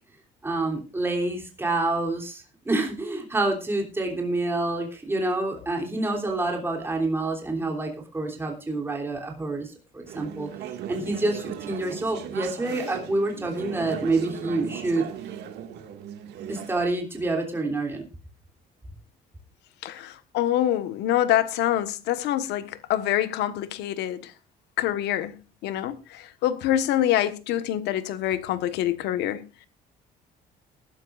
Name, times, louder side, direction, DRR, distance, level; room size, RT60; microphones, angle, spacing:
voice 1, 0.4-10.5 10.9-15.1 16.5-18.0, right 2 dB, 15° right, 3.2 m, -27 dB
Conversation / Chatter, 10.1-16.8, right 9 dB, 80° right, 2.0 m, -37 dB
voice 2, 19.8-24.3 24.8-25.4 25.6-29.4, left 12 dB, 85° left, 1.4 m, -25 dB
21.5 x 12.0 x 2.5 m
cardioid pair, 110°, 17 cm